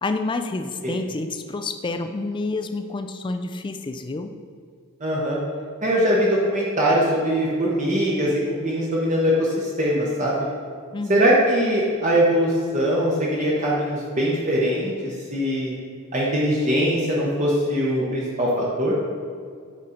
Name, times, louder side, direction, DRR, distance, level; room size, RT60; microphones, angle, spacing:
voice 1, 0.0-4.3 10.9-11.4, left 3 dB, 20° left, 7 dB, 0.3 m, -28 dB
voice 2, 5.0-5.4 5.8-10.5 11.1-15.7 16.1-18.9, equal, 35° right, -5 dB, 0.9 m, -22 dB
7.5 x 3.9 x 4.3 m, 2.1 s
head